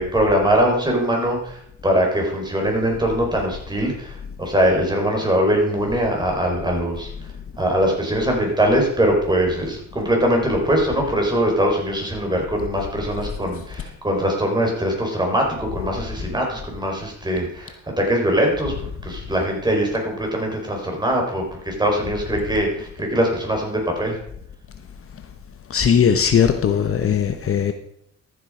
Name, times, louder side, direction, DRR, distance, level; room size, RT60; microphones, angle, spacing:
voice 1, 0.0-1.6 1.8-7.1 7.6-24.2, equal, 15° right, 1 dB, 4.4 m, -22 dB
voice 2, 25.7-27.7, left 7 dB, 45° left, 8 dB, 1.0 m, -18 dB
13.5 x 7.6 x 5.0 m, 0.68 s
cardioid pair, 90°, 30 cm